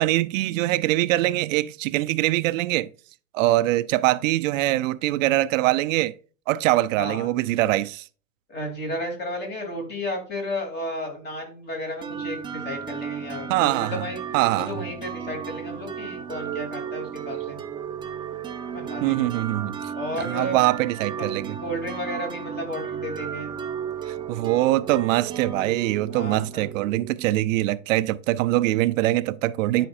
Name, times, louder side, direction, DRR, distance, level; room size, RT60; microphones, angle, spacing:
voice 1, 0.0-2.9 3.3-6.2 6.5-8.0 13.5-14.0 14.3-14.7 19.0-19.8 20.2-21.6 24.3-29.9, right 16 dB, 75° right, 0.5 m, -23 dB
voice 2, 6.9-7.3 8.5-14.2 14.5-17.6 18.7-19.3 19.9-20.6 21.2-21.3 21.6-23.5 26.1-26.7 29.7-29.9, left 1 dB, 25° left, 2.9 m, -33 dB
sound 1, 12.0-27.6, right 7 dB, 10° right, 0.6 m, -34 dB
11.5 x 5.2 x 2.5 m
supercardioid pair, 145°, 39 cm